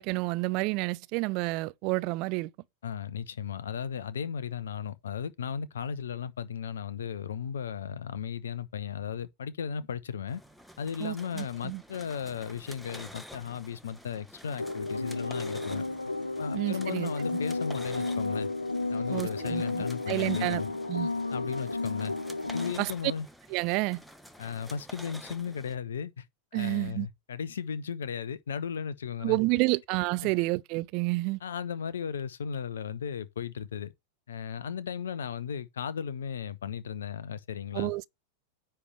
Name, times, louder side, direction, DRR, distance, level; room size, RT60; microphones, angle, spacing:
voice 1, 0.0-2.5 11.0-11.8 16.5-17.1 19.1-20.6 20.9-21.1 22.8-22.9 23.5-24.0 26.5-27.1 29.2-31.4 37.7-38.1, right 24 dB, 45° right, 0.4 m, -29 dB
voice 2, 2.8-10.4 10.8-15.9 16.4-18.5 18.9-20.7 21.3-22.1 22.5-23.3 24.4-26.3 26.5-29.4 30.2-30.3 31.4-33.9 34.3-37.9, left 7 dB, 65° left, 0.8 m, -36 dB
sound 1, 10.3-25.7, equal, ahead, 1.0 m, -49 dB
sound 2, 14.6-22.7, left 2 dB, 80° left, 0.5 m, -32 dB
9.8 x 3.4 x 6.6 m
figure-of-eight pair, 90°, 0 cm